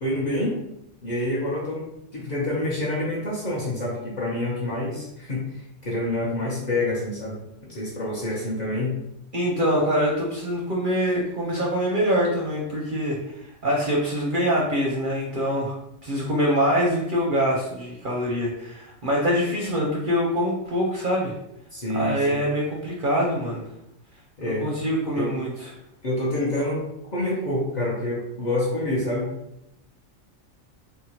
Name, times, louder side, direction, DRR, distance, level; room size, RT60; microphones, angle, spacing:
voice 1, 0.0-0.6 1.0-1.9 2.1-7.4 7.7-8.9 21.7-22.4 24.4-24.7 25.2-25.3 26.0-26.8 27.1-29.3, left 1 dB, 45° left, -6 dB, 0.7 m, -27 dB
voice 2, 9.3-15.8 16.0-21.3 21.9-23.6 24.4-25.7, equal, 55° right, -3 dB, 0.6 m, -24 dB
3.6 x 2.2 x 2.8 m, 0.83 s
omnidirectional pair, 1.4 m